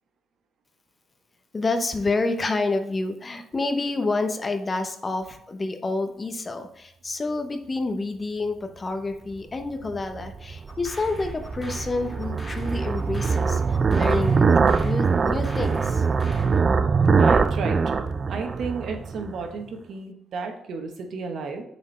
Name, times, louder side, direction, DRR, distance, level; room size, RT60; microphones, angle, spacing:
voice 1, 1.5-14.5 14.8-16.0, left 3 dB, 30° left, 7 dB, 0.8 m, -28 dB
sound 1, 9.9-19.4, right 5 dB, 40° right, 0.3 m, -23 dB
sound 2, 10.7-16.6, left 1 dB, 10° left, 1.5 m, -45 dB
voice 2, 17.2-21.6, right 4 dB, 65° right, 4 dB, 1.1 m, -32 dB
7.4 x 4.3 x 3.2 m, 0.75 s
cardioid pair, 90°, 0 cm